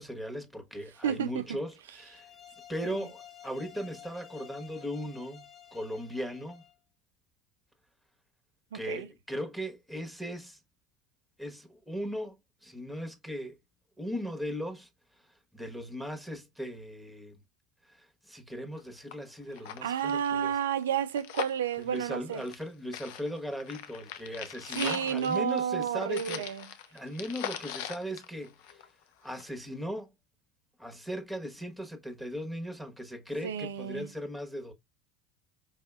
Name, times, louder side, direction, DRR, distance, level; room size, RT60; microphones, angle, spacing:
voice 1, 0.0-2.3 2.7-5.4 5.7-6.6 8.7-10.6 11.4-13.6 14.0-14.9 15.5-17.4 17.8-20.6 21.8-26.4 26.9-28.9 29.2-30.1 30.8-34.7, equal, ahead, 1.2 m, -38 dB
voice 2, 1.0-1.4 2.8-3.1 8.7-9.1 19.8-22.4 24.7-26.6 33.4-34.1, right 8 dB, 80° right, 0.4 m, -31 dB
sound 1, 1.9-6.7, left 10 dB, 25° left, 1.4 m, -52 dB
sound 2, 18.8-18.9 19.1-19.2 19.5-22.7 22.9-29.0 29.4-29.5, left 10 dB, 65° left, 0.5 m, -40 dB
4.7 x 2.7 x 2.3 m
hypercardioid pair, 75°, 0 cm